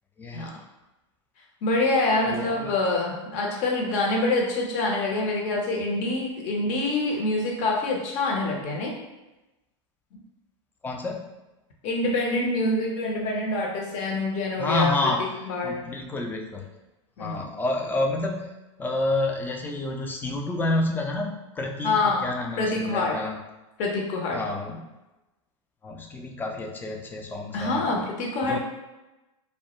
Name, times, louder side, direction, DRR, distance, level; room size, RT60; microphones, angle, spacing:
voice 1, 0.2-0.5 2.3-2.7 10.8-11.3 14.6-15.2 15.6-16.7 17.2-18.5 18.8-23.4 24.3-24.9 25.8-28.1 28.4-28.6, left 2 dB, 10° left, 2 dB, 0.3 m, -29 dB
voice 2, 1.6-8.9 11.8-15.1 15.4-15.8 17.2-17.5 21.8-22.3 22.6-23.2 23.8-24.5 27.5-28.6, left 2 dB, 45° left, 0 dB, 0.7 m, -26 dB
2.2 x 2.1 x 2.9 m, 1.0 s
hypercardioid pair, 105°, 16 cm